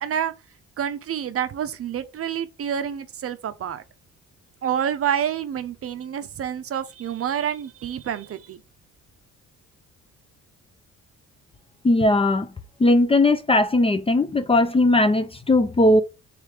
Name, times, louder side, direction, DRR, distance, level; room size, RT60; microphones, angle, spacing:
voice 1, 0.0-0.3 0.8-3.8 4.6-8.6, right 9 dB, 50° right, 0.6 m, -28 dB
voice 2, 11.8-12.5 12.8-16.0, left 2 dB, 20° left, 0.4 m, -18 dB
3.3 x 3.2 x 3.3 m
cardioid pair, 90°, 30 cm